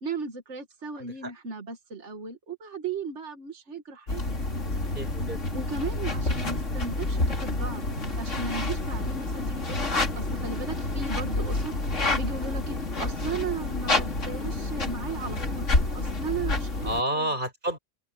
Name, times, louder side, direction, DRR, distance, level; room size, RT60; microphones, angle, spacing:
voice 1, 0.0-4.2 5.5-7.9 8.2-16.9 17.2-17.3, right 4 dB, 70° right, 2.1 m, -36 dB
voice 2, 1.0-1.3 4.8-5.4 16.8-17.8, right 1 dB, 40° right, 7.0 m, -30 dB
sound 1, 4.1-17.0, left 2 dB, 80° left, 3.4 m, -29 dB
omnidirectional pair, 1.2 m